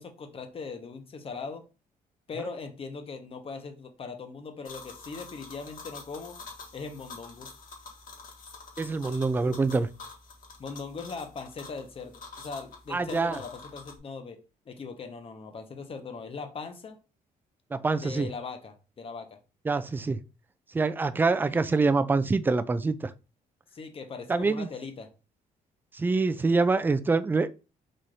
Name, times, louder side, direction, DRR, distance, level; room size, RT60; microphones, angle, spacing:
voice 1, 0.0-1.7 2.3-6.4 6.7-7.5 10.6-17.0 18.0-19.4 23.7-25.1, left 4 dB, 35° left, 0.9 m, -40 dB
sound 1, 4.6-14.0, left 4 dB, 60° left, 1.6 m, -47 dB
voice 2, 8.8-9.9 12.9-13.4 17.7-18.3 19.7-20.2 20.7-23.1 24.3-24.7 25.9-27.5, right 3 dB, 15° right, 0.3 m, -25 dB
4.3 x 2.6 x 4.8 m
cardioid pair, 125°, 16 cm